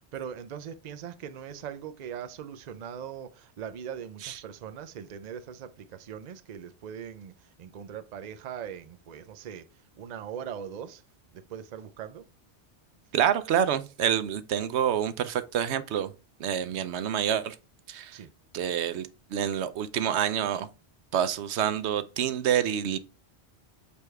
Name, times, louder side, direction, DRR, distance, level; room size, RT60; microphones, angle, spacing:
voice 1, 0.1-9.7 10.0-11.0 11.3-12.3 16.7-16.8 18.1-18.3, right 8 dB, 50° right, 0.6 m, -40 dB
voice 2, 13.1-16.1 16.4-17.6 17.9-18.2 18.5-20.7 21.1-23.0, right 9 dB, 85° right, 0.9 m, -27 dB
6.9 x 3.3 x 4.6 m
omnidirectional pair, 1.1 m